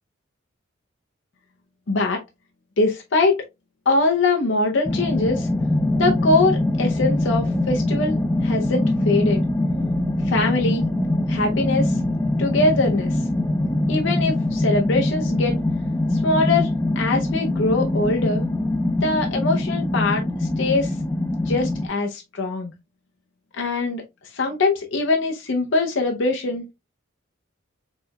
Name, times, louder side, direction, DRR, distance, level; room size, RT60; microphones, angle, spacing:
voice 1, 1.9-2.2 2.8-3.4 3.9-5.5 6.0-9.4 10.2-10.9 11.3-12.0 12.4-13.2 13.9-15.5 16.1-16.7 17.0-18.5 19.0-21.0 21.5-22.7 23.6-24.0 24.3-26.6, left 3 dB, 65° left, 0.7 m, -22 dB
sound 1, 4.9-21.9, left 1 dB, 10° left, 0.3 m, -23 dB
4.4 x 3.3 x 2.2 m
head